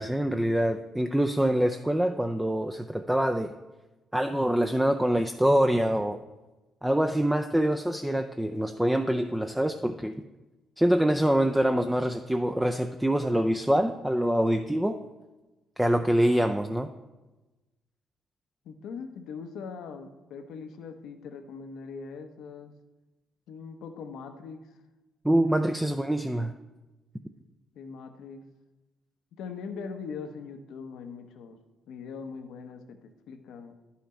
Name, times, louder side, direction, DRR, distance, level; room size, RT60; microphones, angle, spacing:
voice 1, 0.0-3.5 4.1-6.2 6.8-10.1 10.8-15.0 15.8-16.9 25.2-26.5, right 1 dB, 5° right, 6 dB, 0.4 m, -25 dB
voice 2, 18.6-22.7 23.5-24.7 25.4-26.0 27.8-28.4 29.4-31.6 31.9-33.7, left 5 dB, 85° left, 7 dB, 0.8 m, -41 dB
10.5 x 5.7 x 4.3 m, 1.1 s
cardioid pair, 90°, 0 cm